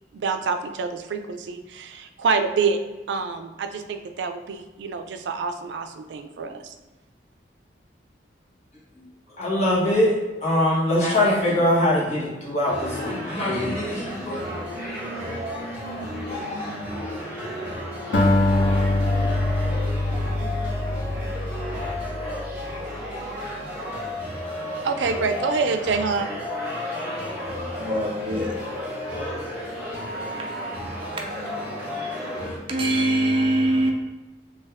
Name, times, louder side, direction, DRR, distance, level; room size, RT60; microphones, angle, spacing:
voice 1, 0.1-2.8 3.1-6.7 24.8-26.3, right 4 dB, 80° right, 0.4 m, -26 dB
voice 2, 9.4-10.1 10.4-14.4, left 1 dB, 40° left, 1.3 m, -22 dB
sound 1, 12.6-32.6, left 1 dB, 10° right, 1.1 m, -32 dB
Acoustic guitar, 18.1-22.6, left 2 dB, 90° left, 0.7 m, -23 dB
voice 3, 27.7-28.7 31.9-32.3 32.7-33.9, right 1 dB, 30° right, 0.5 m, -23 dB
3.3 x 2.8 x 3.4 m
head